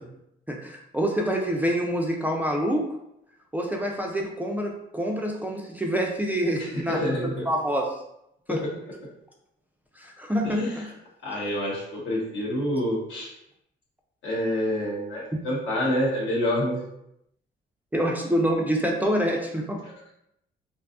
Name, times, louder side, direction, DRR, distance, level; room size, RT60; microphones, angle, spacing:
voice 1, 0.5-2.9 3.5-8.0 8.5-8.6 10.0-10.9 17.9-19.8, equal, 10° right, -1 dB, 0.3 m, -26 dB
voice 2, 6.6-7.4 8.5-8.7 10.4-10.8 11.2-13.3 14.2-16.8, left 1 dB, 70° left, -4 dB, 0.9 m, -27 dB
2.5 x 2.3 x 2.4 m, 0.79 s
cardioid pair, 90°, 20 cm